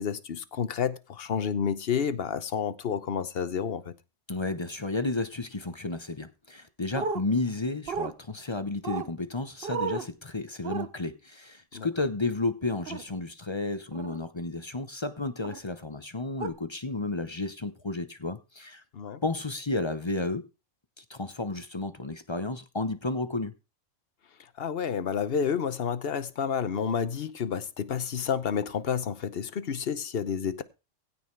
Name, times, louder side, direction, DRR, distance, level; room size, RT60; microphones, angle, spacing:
voice 1, 0.0-3.8 11.7-11.9 18.9-19.2 24.6-30.6, left 7 dB, 55° left, 1.0 m, -30 dB
voice 2, 4.3-18.8 19.2-20.4 21.0-23.5, left 3 dB, 25° left, 0.8 m, -32 dB
sound 1, 6.9-7.2 7.9-8.1 8.8-9.1 9.6-10.1 10.6-10.9 12.9-13.0 13.9-14.2 15.4-15.6 16.4-16.5, right 5 dB, 50° right, 1.1 m, -32 dB
16.0 x 5.7 x 4.5 m
omnidirectional pair, 1.3 m